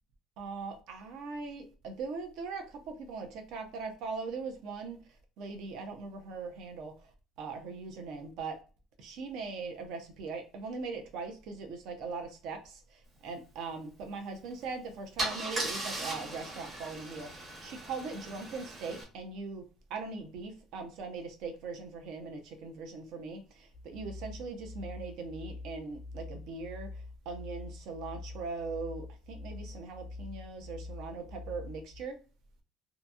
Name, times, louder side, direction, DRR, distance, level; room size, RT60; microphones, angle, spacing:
voice 1, 0.4-5.0 5.4-7.1 7.4-8.6 9.0-19.6 19.9-32.2, right 4 dB, 65° right, 0.7 m, -40 dB
Car / Engine starting / Idling, 14.5-14.6 15.2-19.0, right 1 dB, 25° right, 0.8 m, -38 dB
sound 1, 23.7-32.0, left 3 dB, 75° left, 0.3 m, -45 dB
2.8 x 2.6 x 2.3 m
cardioid pair, 170°, 0 cm